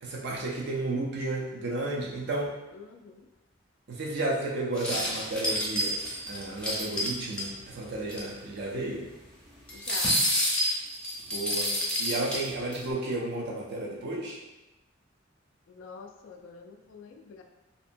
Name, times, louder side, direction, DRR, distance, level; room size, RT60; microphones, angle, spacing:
voice 1, 0.0-2.5 3.9-5.9 6.3-9.1 11.3-11.7 12.0-14.4, right 2 dB, 60° right, -2 dB, 0.4 m, -32 dB
voice 2, 2.7-3.3 9.7-10.2 15.7-17.4, left 5 dB, 80° left, 5 dB, 0.3 m, -46 dB
sound 1, 4.8-7.4 7.8-7.9 8.1-8.3 9.7-12.8, equal, 5° left, 0.5 m, -28 dB
2.7 x 2.1 x 2.5 m, 1.0 s
head